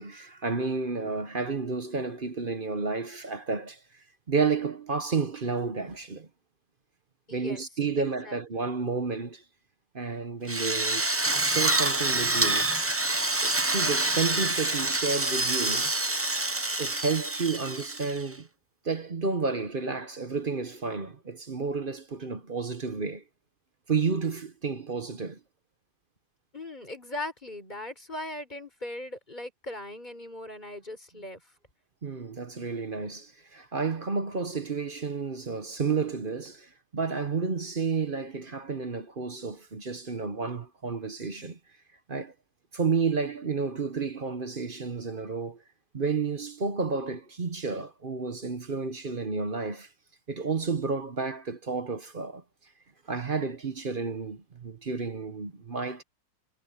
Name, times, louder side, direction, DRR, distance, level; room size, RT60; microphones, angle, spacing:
voice 1, 0.0-3.8 4.3-6.3 7.3-9.4 9.9-11.0 11.4-12.7 13.4-15.9 16.8-18.5 18.8-23.2 23.9-25.4 32.0-41.6 42.1-42.3 42.7-45.6 45.9-49.9 50.3-52.4 53.1-56.0, right 4 dB, 40° right, 1.1 m, -31 dB
voice 2, 7.3-7.6 8.0-8.7 26.5-31.4, left 1 dB, 30° left, 4.6 m, -39 dB
Drill, 10.5-18.3, right 2 dB, 15° right, 0.5 m, -27 dB
omnidirectional pair, 1.7 m